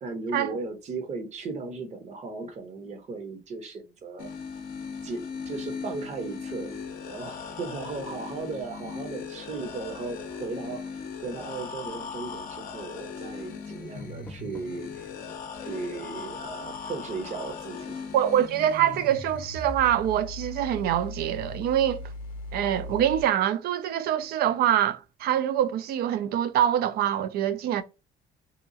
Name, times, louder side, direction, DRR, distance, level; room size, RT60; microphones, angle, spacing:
voice 1, 0.0-4.3 5.0-6.8 7.1-15.0 15.6-18.0, right 4 dB, 40° right, 0.8 m, -36 dB
sound 1, 4.2-23.2, left 4 dB, 55° left, 0.5 m, -38 dB
Door, 13.7-14.9, left 2 dB, 15° left, 0.6 m, -50 dB
voice 2, 18.1-22.1 22.5-27.8, right 11 dB, 65° right, 0.4 m, -25 dB
2.9 x 2.3 x 2.5 m
cardioid pair, 110°, 17 cm